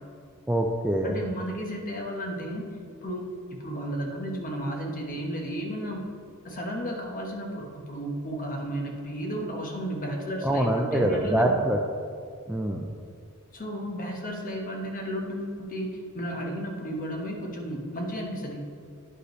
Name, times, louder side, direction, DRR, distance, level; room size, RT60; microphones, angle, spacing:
voice 1, 0.5-1.2 10.4-11.8 12.5-12.9, right 1 dB, 5° right, 1 dB, 0.3 m, -24 dB
voice 2, 1.0-2.7 3.0-6.0 6.4-11.7 13.5-18.6, equal, 40° left, 0 dB, 1.1 m, -33 dB
9.9 x 5.3 x 3.1 m, 2.3 s
head